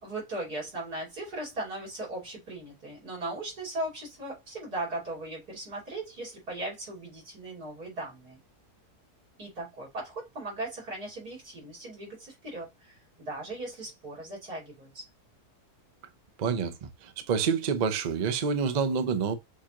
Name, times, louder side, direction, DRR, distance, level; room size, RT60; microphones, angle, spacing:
voice 1, 0.0-8.4 9.4-15.0, right 2 dB, 75° right, 3.3 m, -38 dB
voice 2, 16.4-19.3, right 6 dB, 60° right, 0.4 m, -28 dB
6.5 x 2.5 x 2.8 m
omnidirectional pair, 1.6 m